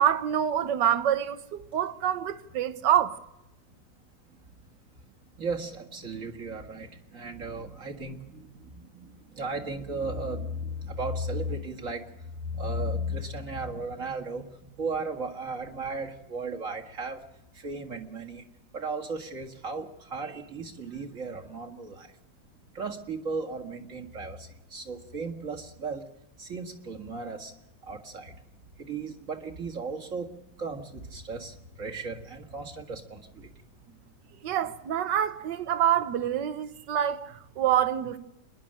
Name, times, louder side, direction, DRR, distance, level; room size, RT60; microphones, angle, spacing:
voice 1, 0.0-3.2 34.4-38.2, right 10 dB, 85° right, 1.6 m, -26 dB
voice 2, 5.4-12.0 12.5-17.2 17.6-18.4 18.7-22.1 22.8-26.0 26.4-27.5 27.8-28.3 28.8-30.3 30.6-33.5, right 2 dB, 50° right, 2.2 m, -35 dB
27.0 x 11.0 x 8.8 m
omnidirectional pair, 1.8 m